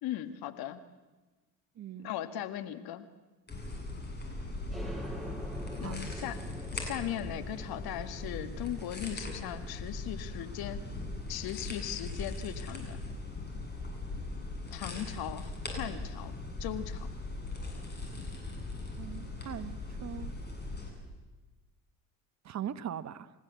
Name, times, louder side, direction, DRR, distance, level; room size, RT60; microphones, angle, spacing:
voice 1, 0.0-0.8 2.0-3.1 5.8-6.4 6.7-10.8 11.3-13.0 14.7-15.5 15.8-16.3 16.6-17.1, left 11 dB, 60° left, 10 dB, 1.8 m, -38 dB
voice 2, 1.8-2.1 5.8-6.0 19.0-20.3 22.4-23.3, right 9 dB, 40° right, 13 dB, 1.2 m, -40 dB
sound 1, 3.5-20.9, left 2 dB, 25° left, 7.9 m, -40 dB
sound 2, 4.7-12.0, right 1 dB, ahead, 5.9 m, -46 dB
29.5 x 16.0 x 8.3 m, 1.2 s
hypercardioid pair, 65°, 42 cm